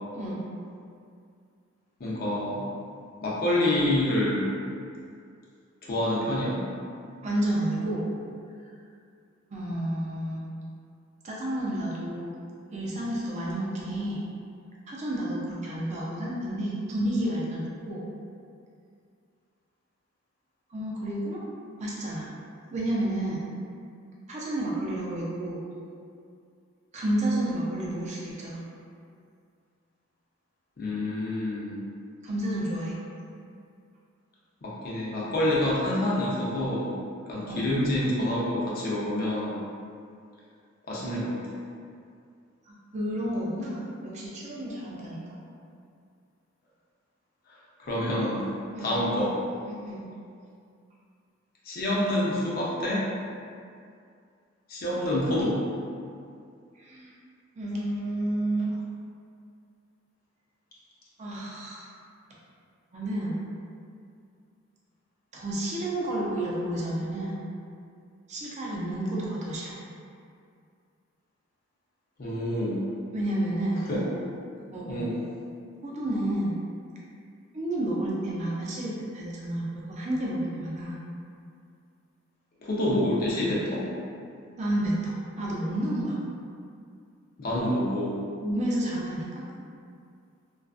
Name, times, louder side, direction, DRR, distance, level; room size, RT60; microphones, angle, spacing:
voice 1, 2.0-2.6 3.2-4.5 5.8-6.6 30.8-31.8 34.6-36.9 37.3-39.6 40.9-41.4 47.5-48.4 48.8-49.4 51.6-53.0 54.7-55.6 72.2-72.8 73.9-74.0 74.9-75.2 82.6-83.8 87.4-88.2, left 1 dB, 45° left, -6 dB, 0.5 m, -27 dB
voice 2, 7.2-8.1 9.5-10.4 11.2-12.3 12.7-14.2 14.9-18.1 20.7-21.4 21.8-22.3 22.7-23.4 24.3-25.6 26.9-28.6 32.2-32.9 37.5-37.6 42.7-45.4 48.7-49.0 49.6-50.0 56.8-57.1 57.6-58.8 61.2-61.9 62.9-63.4 65.3-67.4 68.3-69.8 73.1-73.8 74.7-75.1 75.8-76.6 77.5-81.0 84.6-86.2 88.4-89.4, right 1 dB, 35° right, -5 dB, 0.5 m, -30 dB
2.4 x 2.2 x 2.3 m, 2.3 s
head